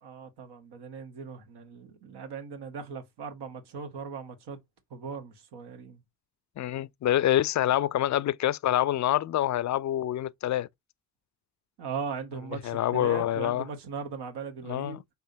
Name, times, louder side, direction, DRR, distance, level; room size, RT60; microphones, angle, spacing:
voice 1, 0.0-4.6 4.9-6.0 11.8-15.0, right 6 dB, 75° right, 1.3 m, -39 dB
voice 2, 6.6-10.7 12.5-13.7 14.6-15.1, left 12 dB, 45° left, 0.4 m, -26 dB
5.4 x 3.4 x 2.7 m
hypercardioid pair, 45°, 41 cm